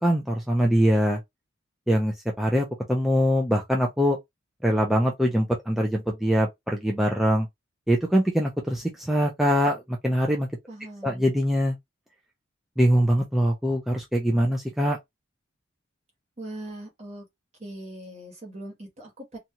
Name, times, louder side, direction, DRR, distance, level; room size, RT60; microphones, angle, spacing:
voice 1, 0.0-1.2 1.9-4.2 4.6-7.5 7.9-10.5 11.0-11.8 12.8-15.0, equal, ahead, 0.4 m, -23 dB
voice 2, 10.7-11.3 16.4-17.3 17.6-19.4, right 1 dB, 35° right, 1.3 m, -40 dB
2.7 x 2.4 x 2.8 m
head